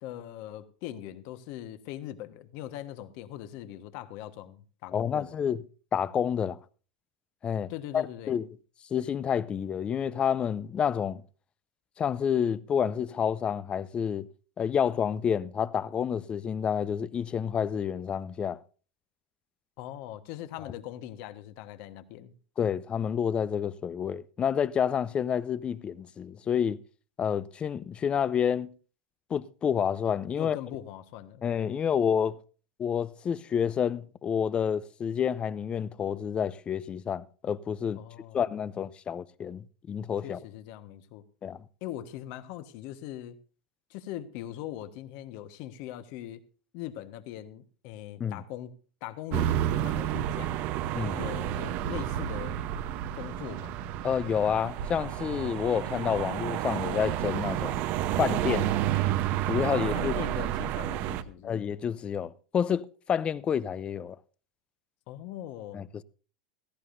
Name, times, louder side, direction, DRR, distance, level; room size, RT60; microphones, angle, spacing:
voice 1, 0.0-5.4 7.7-8.3 19.8-22.3 30.4-31.5 37.9-38.4 40.2-41.2 41.8-43.4 43.9-46.4 46.7-50.5 51.1-52.6 53.1-53.8 59.9-61.6 65.1-65.8, left 12 dB, 60° left, 1.3 m, -41 dB
voice 2, 4.9-5.6 5.9-6.6 7.4-8.5 8.9-11.2 12.0-14.3 14.6-18.6 22.6-26.8 27.2-28.7 29.3-30.6 31.4-32.4 32.8-38.0 38.3-40.4 41.4-41.6 48.2-48.4 50.9-51.2 54.0-57.8 58.2-58.7 59.4-60.1 61.4-64.2 65.7-66.0, left 8 dB, 25° left, 0.6 m, -29 dB
sound 1, 49.3-61.2, right 12 dB, 55° right, 0.9 m, -30 dB
16.5 x 14.0 x 2.6 m
supercardioid pair, 115°, 4 cm